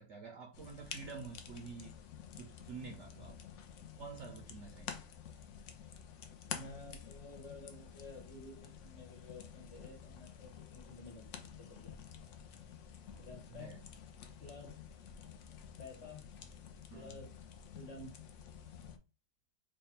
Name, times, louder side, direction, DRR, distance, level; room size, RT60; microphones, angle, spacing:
voice 1, 0.0-2.0 2.3-3.4 4.0-5.0 13.1-13.8 16.9-17.2, right 5 dB, 65° right, 3 dB, 0.7 m, -49 dB
sound 1, 0.5-19.0, left 7 dB, 70° left, 0.8 m, -50 dB
voice 2, 6.4-12.0 13.2-13.7 14.4-14.8 15.8-16.2 16.9-17.3 17.7-18.2, left 2 dB, 45° left, 0 dB, 1.6 m, -52 dB
3.3 x 2.3 x 4.1 m, 0.31 s
omnidirectional pair, 1.6 m